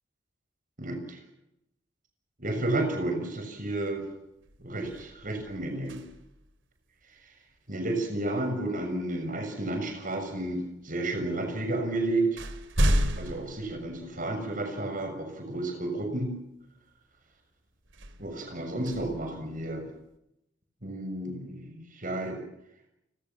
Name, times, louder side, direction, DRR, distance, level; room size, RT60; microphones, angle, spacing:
voice 1, 0.8-1.2 2.4-4.0 4.6-6.0 7.7-12.4 13.2-16.3 18.2-19.8 20.8-22.4, right 2 dB, 45° right, 5 dB, 6.7 m, -31 dB
sound 1, 3.8-4.0 4.4-6.5 8.6-8.8 9.6-10.4 11.3-11.4 11.8-14.6 15.1-15.2 17.8-20.0, equal, 80° right, 3.0 m, -32 dB
30.0 x 19.0 x 7.2 m, 0.83 s
head